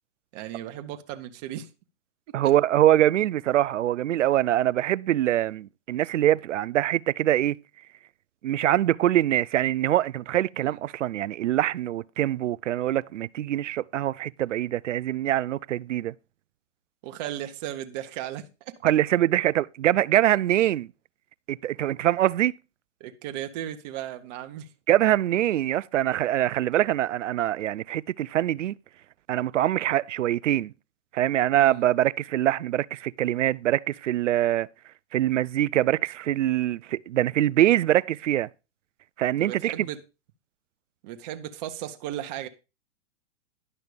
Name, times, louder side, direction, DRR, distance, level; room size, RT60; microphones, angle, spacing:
voice 1, 0.3-1.7 2.3-2.5 10.6-10.7 17.0-18.7 23.0-24.7 31.5-31.8 39.4-40.0 41.0-42.5, right 12 dB, 35° right, 1.1 m, -36 dB
voice 2, 2.3-7.6 8.4-16.1 18.8-20.9 21.5-22.5 24.9-28.7 29.3-30.7 31.1-34.7 35.1-38.5 39.2-39.9, right 13 dB, 85° right, 0.5 m, -24 dB
11.0 x 5.8 x 5.1 m
hypercardioid pair, 140°, 36 cm